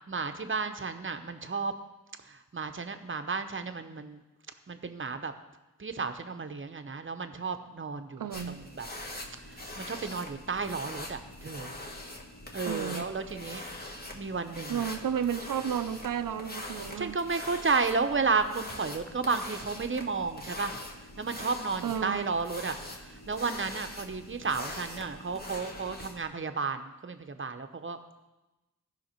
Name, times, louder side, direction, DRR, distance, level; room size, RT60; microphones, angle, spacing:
voice 1, 0.1-1.7 2.3-4.2 4.7-5.3 5.8-8.2 8.5-8.9 9.8-11.7 12.5-14.9 17.0-20.8 21.2-22.8 23.0-28.0, right 4 dB, 40° right, 8 dB, 0.8 m, -32 dB
voice 2, 8.2-8.7 12.6-13.1 14.7-17.2 21.8-22.3, right 8 dB, 80° right, 11 dB, 0.6 m, -32 dB
sound 1, 8.3-26.2, left 1 dB, 30° left, 1.3 m, -43 dB
15.0 x 5.8 x 4.4 m, 1.0 s
wide cardioid pair, 65°, 32 cm